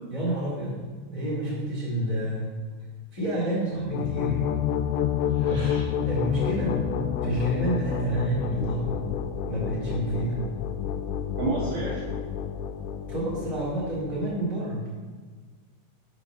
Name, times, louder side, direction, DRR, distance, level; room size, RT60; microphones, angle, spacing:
voice 1, 0.1-0.8 1.1-2.5 3.1-4.4 5.4-5.7 6.0-6.8 7.2-8.9 9.5-10.5 13.0-14.8, right 1 dB, 15° left, -7 dB, 1.3 m, -29 dB
sound 1, 3.7-14.4, left 8 dB, 85° left, 3.0 m, -29 dB
voice 2, 5.3-5.8 11.4-12.0, right 2 dB, 75° right, -5 dB, 2.3 m, -30 dB
7.5 x 4.9 x 6.5 m, 1.5 s
omnidirectional pair, 5.7 m